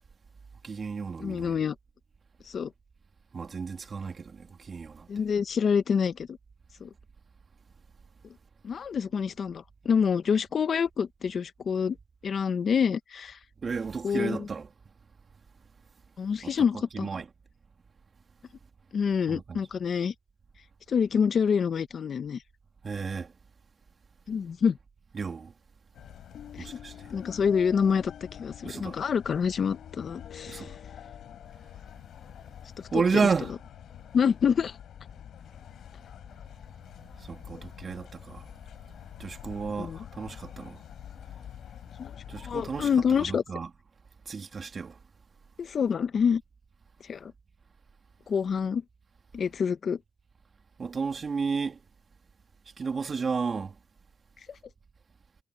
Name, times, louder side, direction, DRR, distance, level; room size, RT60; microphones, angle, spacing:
voice 1, 0.6-1.6 3.3-5.1 13.6-14.7 16.4-16.5 16.9-17.2 19.3-19.6 22.8-23.3 25.1-25.5 26.6-27.1 28.6-29.0 30.5-30.8 32.9-33.5 37.2-38.4 39.2-40.8 42.3-42.9 43.2-43.7 44.2-45.0 50.8-51.8 52.8-53.8, right 5 dB, 40° right, 3.0 m, -32 dB
voice 2, 1.2-1.7 2.4-2.7 5.1-6.4 6.8-6.9 8.6-12.0 12.2-13.4 14.0-14.5 16.2-17.1 18.9-20.1 20.9-22.4 24.3-24.8 26.5-26.8 27.1-30.7 32.8-33.0 34.1-34.8 39.8-40.0 42.0-43.4 45.6-46.4 47.0-47.3 48.3-48.8 49.3-50.0 54.5-54.6, left 6 dB, 50° left, 1.0 m, -27 dB
sound 1, 25.9-43.4, left 9 dB, 70° left, 4.9 m, -46 dB
cardioid pair, 90°, 0 cm